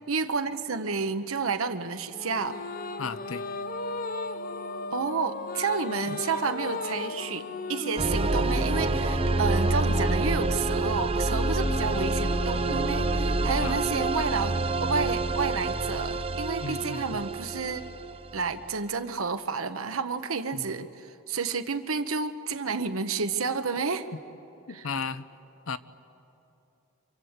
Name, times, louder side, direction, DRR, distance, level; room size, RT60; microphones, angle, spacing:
voice 1, 0.1-2.6 4.9-17.8 18.3-24.1 24.7-24.9, right 4 dB, 85° right, 9 dB, 1.1 m, -30 dB
sound 1, 2.1-15.7, left 3 dB, 40° left, 0.7 m, -36 dB
voice 2, 3.0-3.5 6.1-6.2 13.6-13.8 16.6-17.3 20.5-20.9 24.7-25.2 25.7-25.8, left 4 dB, 75° left, 13 dB, 0.8 m, -35 dB
sound 2, 8.0-18.6, right 2 dB, 25° right, 0.5 m, -27 dB
27.0 x 25.5 x 8.1 m, 3.0 s
head